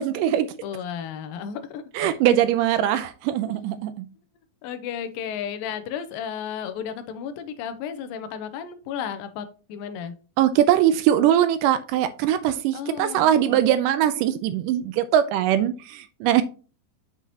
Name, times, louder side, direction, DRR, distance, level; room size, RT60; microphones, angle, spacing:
voice 1, 0.0-0.5 2.0-4.1 10.4-16.4, right 11 dB, 80° right, 12 dB, 2.0 m, -21 dB
voice 2, 0.6-1.8 3.5-3.6 4.6-10.2 12.7-13.6, left 8 dB, 90° left, 10 dB, 2.5 m, -33 dB
7.8 x 5.1 x 2.8 m, 0.35 s
omnidirectional pair, 4.0 m